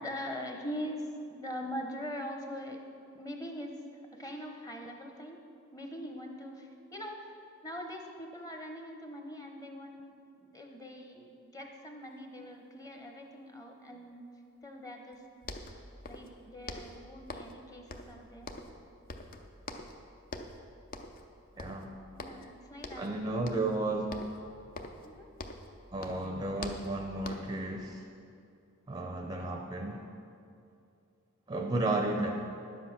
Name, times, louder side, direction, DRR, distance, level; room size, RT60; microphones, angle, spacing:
voice 1, 0.0-2.8 3.1-3.7 4.1-5.4 5.7-7.2 7.6-10.1 10.4-14.3 14.6-15.2 16.0-18.5 22.1-23.2 25.0-25.3, equal, 15° left, 3 dB, 1.0 m, -42 dB
sound 1, 15.1-15.2 15.4-16.4 16.7-17.6 17.9-18.8 19.1-20.0 20.3-20.6 20.9-21.3 21.6-22.5 22.8-23.1 23.5-23.8 24.1-25.7 26.0-27.6, left 2 dB, 40° left, 0.7 m, -44 dB
voice 2, 21.6-21.9 23.0-24.2 25.9-28.0 28.9-30.0 31.5-32.3, right 2 dB, 20° right, 2 dB, 0.6 m, -33 dB
10.5 x 7.8 x 6.0 m, 2.5 s
head